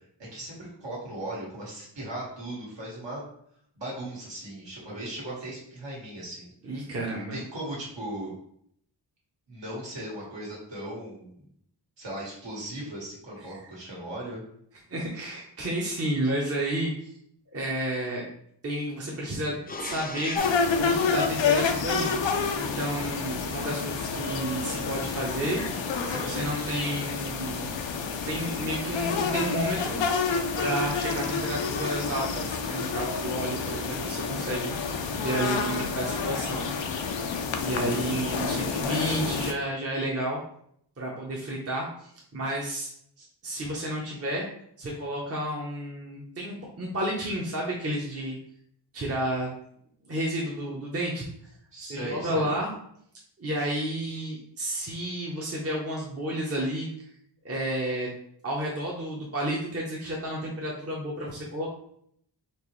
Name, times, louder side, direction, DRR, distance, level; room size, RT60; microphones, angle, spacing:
voice 1, 0.3-3.3 3.8-6.8 7.3-8.3 9.5-11.4 12.0-14.4 51.7-52.5, right 1 dB, 75° right, -4 dB, 1.7 m, -37 dB
voice 2, 6.6-7.4 13.4-13.6 14.9-17.1 17.5-18.3 18.6-20.4 20.8-22.1 22.6-25.6 26.1-27.7 28.3-30.0 30.6-36.7 37.6-40.4 41.0-42.9 43.2-44.5 44.8-48.4 48.9-49.5 50.1-51.3 51.8-52.7 53.4-56.9 57.4-58.1 58.4-61.7, right 1 dB, 35° right, -3 dB, 0.8 m, -31 dB
sound 1, 19.7-22.4 24.8-26.2, left 3 dB, 25° left, 0.3 m, -40 dB
sound 2, 20.3-39.5, left 5 dB, 80° left, 0.6 m, -29 dB
4.5 x 3.0 x 3.1 m, 0.69 s
wide cardioid pair, 105°, 44 cm